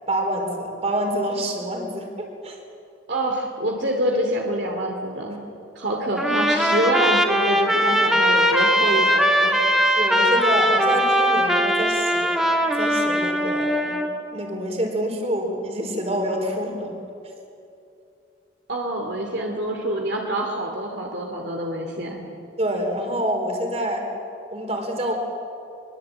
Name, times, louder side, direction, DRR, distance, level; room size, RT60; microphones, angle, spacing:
voice 1, 0.1-2.6 10.0-14.0 14.3-16.9 22.6-24.1 24.5-25.1, equal, 30° right, 3 dB, 4.3 m, -27 dB
voice 2, 3.1-5.4 5.7-9.6 18.7-22.2, right 1 dB, 60° right, 1 dB, 2.7 m, -26 dB
Trumpet, 6.2-14.1, equal, ahead, 1.9 m, -20 dB
24.5 x 23.0 x 8.9 m, 2.7 s
head